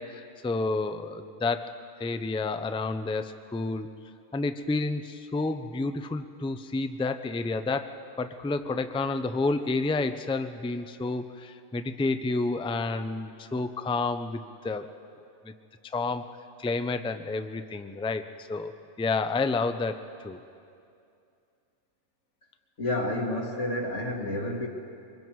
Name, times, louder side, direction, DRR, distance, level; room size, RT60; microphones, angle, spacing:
voice 1, 0.0-1.7 2.0-3.9 4.3-14.9 15.4-15.5 15.9-18.7 19.0-20.4, left 3 dB, 10° left, 9 dB, 0.3 m, -30 dB
voice 2, 22.8-24.7, left 1 dB, 70° left, 0 dB, 2.3 m, -30 dB
24.5 x 22.0 x 4.7 m, 2.5 s
omnidirectional pair, 1.3 m